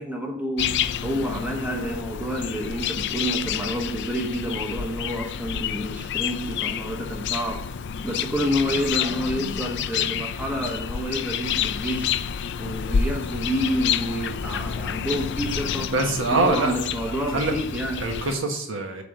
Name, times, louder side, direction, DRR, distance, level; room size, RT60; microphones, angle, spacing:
voice 1, 0.0-12.1 12.6-15.9 16.3-18.0, equal, 5° right, 1 dB, 0.9 m, -29 dB
sound 1, 0.6-18.4, left 8 dB, 55° left, 0.4 m, -29 dB
voice 2, 15.9-16.7 17.3-17.5 18.0-19.0, right 2 dB, 60° right, 3 dB, 1.3 m, -24 dB
8.2 x 3.5 x 6.4 m, 0.66 s
head